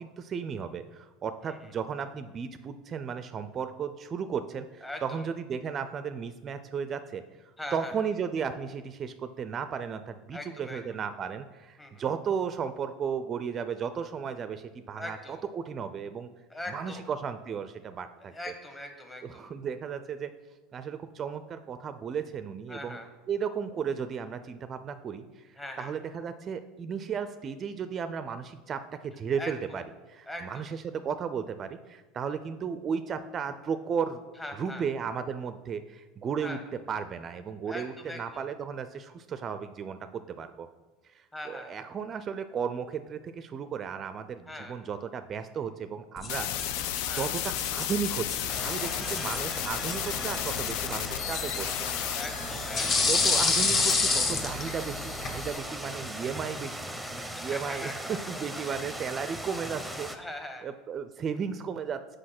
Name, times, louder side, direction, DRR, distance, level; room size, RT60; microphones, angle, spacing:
voice 1, 0.0-7.2 7.7-16.3 16.7-18.3 19.3-20.3 20.7-23.0 23.3-29.8 30.1-34.2 34.6-36.6 36.9-40.7 41.1-46.5 47.1-51.7 53.0-56.9 57.4-60.1 60.6-62.2, right 6 dB, 35° right, 11 dB, 0.4 m, -34 dB
voice 2, 4.8-5.3 7.6-8.1 10.3-10.8 11.8-12.0 15.0-15.4 16.5-17.1 18.2-19.5 22.7-23.1 25.6-25.9 29.3-29.5 30.3-30.7 34.4-34.9 36.4-36.6 37.7-38.4 41.3-41.8 44.5-44.8 47.1-47.3 48.8-49.3 52.1-53.1 55.5-56.1 57.3-58.7 59.8-60.7, left 1 dB, 15° left, 4 dB, 1.4 m, -42 dB
sound 1, 46.2-55.4, left 4 dB, 35° left, 1.2 m, -31 dB
sound 2, 46.3-55.6, left 14 dB, 70° left, 0.3 m, -35 dB
sound 3, 48.5-60.2, right 1 dB, ahead, 0.8 m, -38 dB
6.3 x 4.9 x 5.9 m, 1.2 s
supercardioid pair, 105°, 0 cm